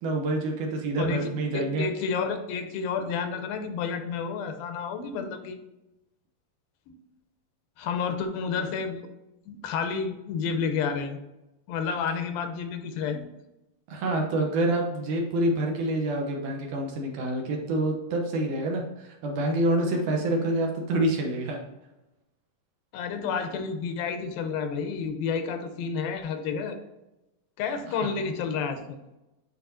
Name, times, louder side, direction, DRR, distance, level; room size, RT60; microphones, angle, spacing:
voice 1, 0.0-1.8 13.9-21.6 28.0-28.1, right 1 dB, 70° right, 1 dB, 2.2 m, -27 dB
voice 2, 1.0-5.6 6.9-7.0 7.8-9.1 9.5-11.2 11.7-13.3 22.9-26.8 27.6-29.0, left 5 dB, 90° left, 7 dB, 2.6 m, -30 dB
9.4 x 4.2 x 2.7 m, 0.96 s
omnidirectional pair, 4.1 m